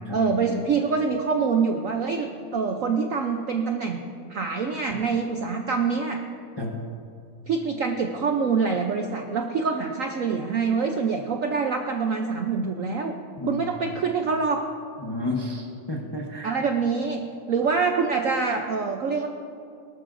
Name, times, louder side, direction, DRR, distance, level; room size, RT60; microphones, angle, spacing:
voice 1, 0.1-4.0 4.3-6.2 7.5-13.1 13.4-14.6 16.4-19.3, right 5 dB, 65° right, 4 dB, 0.8 m, -25 dB
voice 2, 6.6-6.9 13.4-13.6 15.0-16.6, left 2 dB, 25° left, 0 dB, 0.6 m, -31 dB
19.0 x 12.5 x 2.6 m, 2.5 s
omnidirectional pair, 2.1 m